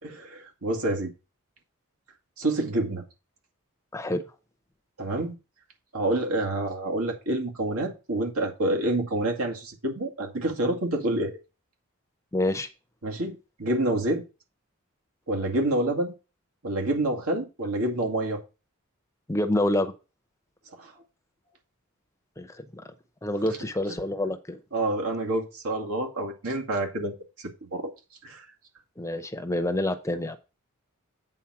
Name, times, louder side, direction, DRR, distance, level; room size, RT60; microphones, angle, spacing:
voice 1, 0.0-1.1 2.4-3.0 5.0-5.4 5.9-11.4 13.0-14.2 15.3-16.1 16.6-18.4 20.8-20.9 23.9-24.0 24.7-27.9 28.2-28.5, right 1 dB, 85° right, 2.2 m, -28 dB
voice 2, 12.3-12.7 19.3-19.9 22.4-22.8 23.2-24.6 29.0-30.4, left 1 dB, 15° left, 0.6 m, -27 dB
8.8 x 4.1 x 5.9 m
head